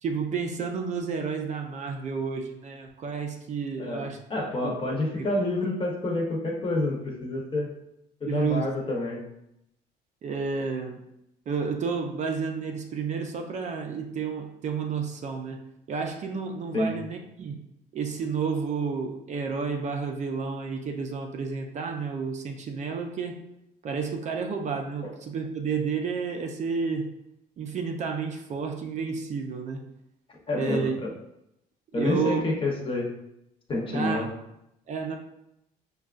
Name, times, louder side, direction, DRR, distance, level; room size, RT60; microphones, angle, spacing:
voice 1, 0.0-4.2 4.6-4.7 5.2-5.3 8.3-8.7 10.2-11.0 11.5-15.6 15.9-17.5 17.9-23.4 23.8-27.1 27.6-29.8 30.5-31.0 31.9-32.4 33.9-34.3 34.9-35.2, right 5 dB, 45° right, 3 dB, 0.5 m, -31 dB
voice 2, 3.8-7.7 8.2-9.2 16.7-16.9 30.5-31.1 31.9-33.1 33.7-34.3, left 2 dB, 30° left, -1 dB, 0.9 m, -28 dB
5.2 x 2.3 x 2.4 m, 0.82 s
cardioid pair, 110°, 17 cm